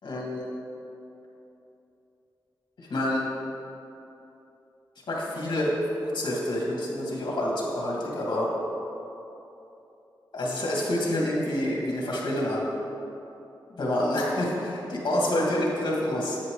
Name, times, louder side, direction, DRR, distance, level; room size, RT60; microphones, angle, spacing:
voice 1, 0.0-0.5 2.8-3.2 5.1-5.7 6.1-8.5 10.3-12.6 13.8-16.4, left 1 dB, 60° left, -4 dB, 2.5 m, -27 dB
10.0 x 9.0 x 4.0 m, 3.0 s
wide cardioid pair, 95°, 8 cm